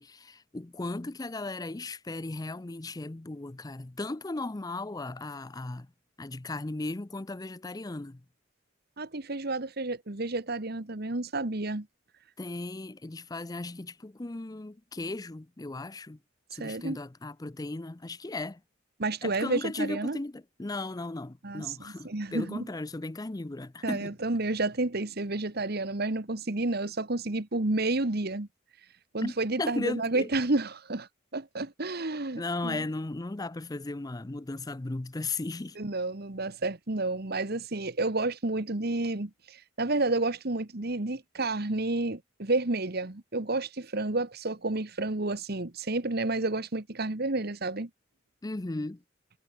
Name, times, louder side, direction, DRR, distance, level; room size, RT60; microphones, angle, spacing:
voice 1, 0.0-5.9 6.2-8.2 12.4-16.2 16.5-18.6 19.2-24.2 29.2-29.3 29.6-30.3 32.4-35.8 48.4-49.0, left 2 dB, 20° left, 0.5 m, -36 dB
voice 2, 9.0-11.9 16.6-17.0 19.0-20.2 21.4-21.7 22.0-22.6 23.8-28.5 29.1-32.8 35.8-47.9, right 2 dB, 55° right, 1.5 m, -30 dB
head